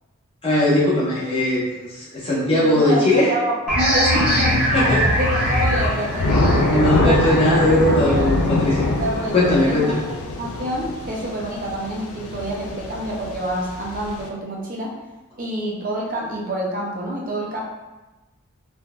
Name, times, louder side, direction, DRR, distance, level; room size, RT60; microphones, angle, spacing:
voice 1, 0.4-1.6 2.0-3.3 4.7-5.1 6.7-8.8 9.3-10.0, left 1 dB, 25° left, -8 dB, 0.8 m, -19 dB
voice 2, 2.6-4.6 5.2-8.3 9.0-9.3 9.7-14.9 15.4-17.6, right 1 dB, 40° right, -3 dB, 0.6 m, -27 dB
sound 1, 3.7-9.0, equal, 5° right, 0.9 m, -22 dB
Thunder / Rain, 4.3-14.3, left 2 dB, 90° left, 0.4 m, -24 dB
3.7 x 2.5 x 2.2 m, 1.1 s
head